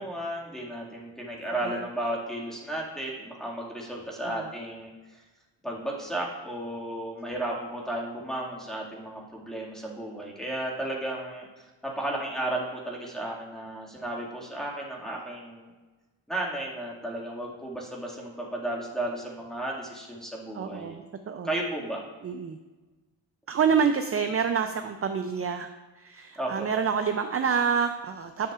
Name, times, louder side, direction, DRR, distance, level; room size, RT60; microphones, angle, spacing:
voice 1, 0.0-5.2 5.6-15.7 16.3-21.0 21.4-22.0 26.4-26.7, right 1 dB, ahead, -3 dB, 2.0 m, -34 dB
voice 2, 20.6-21.5 22.2-22.6 23.5-25.7 26.0-28.5, right 6 dB, 35° right, 7 dB, 0.5 m, -27 dB
10.0 x 6.5 x 2.4 m, 1.2 s
cardioid pair, 80°, 42 cm